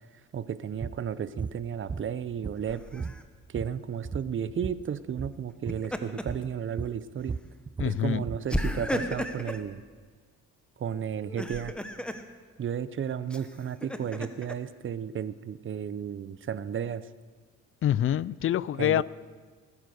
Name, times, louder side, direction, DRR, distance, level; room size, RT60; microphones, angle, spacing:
voice 1, 0.3-3.0 3.5-7.3 7.8-9.8 10.8-11.7 12.6-17.0 18.8-19.0, right 8 dB, 40° right, 15 dB, 0.8 m, -33 dB
sound 1, 0.8-1.0 1.4-1.6 1.9-2.7 3.0-4.8 5.1-5.4 5.7-5.9 6.3-6.5 6.8-8.5, right 5 dB, 15° right, 0.3 m, -36 dB
Laughter, 2.7-3.2 5.5-6.4 6.9-7.0 8.5-9.7 11.2-12.2 13.3-14.5, equal, 5° left, 1.1 m, -34 dB
voice 2, 7.8-8.2 17.8-19.0, left 11 dB, 45° left, 21 dB, 0.4 m, -26 dB
18.5 x 9.8 x 6.5 m, 1.5 s
cardioid pair, 90°, 30 cm